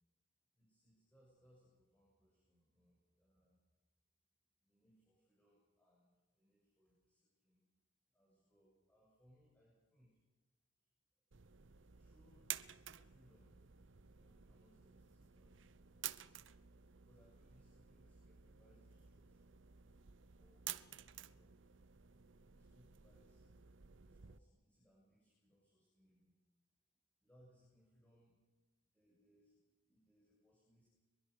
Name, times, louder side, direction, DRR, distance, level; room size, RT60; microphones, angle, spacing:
voice 1, 0.6-3.6 4.6-7.6 8.1-10.2 11.9-13.6 14.0-16.1 17.0-19.6 20.4-20.7 21.0-21.6 22.4-23.4 23.9-26.3 27.2-28.3 28.9-29.6 29.9-30.9, equal, 10° left, -6 dB, 7.6 m, -72 dB
sound 1, 11.3-24.4, right 11 dB, 70° right, 0.8 m, -53 dB
24.0 x 22.5 x 6.8 m, 1.1 s
head